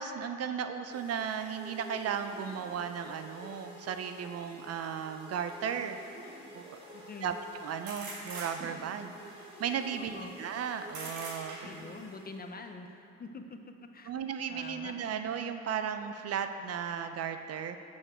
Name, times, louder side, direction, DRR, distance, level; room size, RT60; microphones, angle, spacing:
voice 1, 0.0-6.0 6.5-6.8 7.2-7.3 7.6-9.1 9.6-11.6 14.1-17.8, right 7 dB, 55° right, 8 dB, 0.5 m, -35 dB
sound 1, 0.9-12.7, equal, 20° right, 1.9 m, -50 dB
sound 2, 5.5-5.6 7.9-9.0 10.9-11.9, right 3 dB, 70° right, 1.5 m, -42 dB
voice 2, 6.9-7.3 10.0-10.3 11.6-14.1 14.5-14.9, left 3 dB, 30° left, 5 dB, 0.6 m, -45 dB
7.0 x 6.4 x 4.3 m, 2.6 s
cardioid pair, 90°, 30 cm